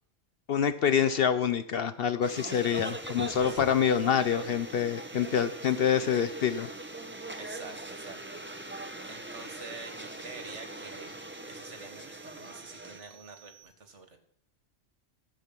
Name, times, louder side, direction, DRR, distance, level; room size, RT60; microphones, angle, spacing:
voice 1, 0.5-6.7, left 8 dB, 60° left, 11 dB, 0.7 m, -26 dB
sound 1, 2.2-13.6, right 6 dB, 40° left, 4.9 m, -57 dB
sound 2, 2.2-13.0, right 2 dB, 10° right, 0.7 m, -41 dB
voice 2, 2.5-2.9 3.4-3.8 7.4-11.2 11.5-14.2, right 4 dB, 70° right, 6 dB, 1.9 m, -47 dB
14.5 x 7.6 x 5.9 m, 0.70 s
omnidirectional pair, 1.3 m